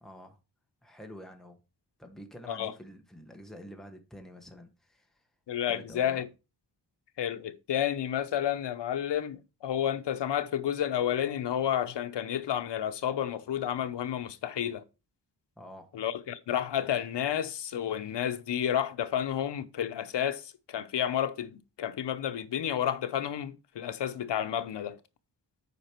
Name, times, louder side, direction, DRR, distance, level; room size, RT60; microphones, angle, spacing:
voice 1, 0.0-0.4 0.8-1.6 2.0-5.2 5.7-6.2 15.6-15.9, equal, ahead, 1.1 m, -48 dB
voice 2, 5.5-6.3 7.2-14.8 15.9-25.0, left 10 dB, 90° left, 0.8 m, -31 dB
8.4 x 5.1 x 4.4 m
wide cardioid pair, 170°, 41 cm